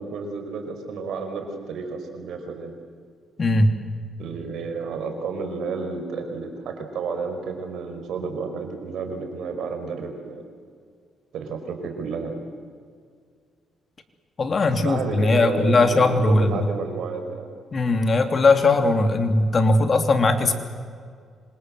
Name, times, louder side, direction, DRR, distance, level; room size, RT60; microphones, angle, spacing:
voice 1, 0.0-2.8 4.2-10.4 11.3-12.3 14.8-17.5, right 4 dB, 75° right, 5 dB, 5.3 m, -31 dB
voice 2, 3.4-3.7 14.4-16.7 17.7-20.5, left 2 dB, 40° left, 7 dB, 3.0 m, -19 dB
27.0 x 26.5 x 7.9 m, 2.1 s
cardioid pair, 90°, 0 cm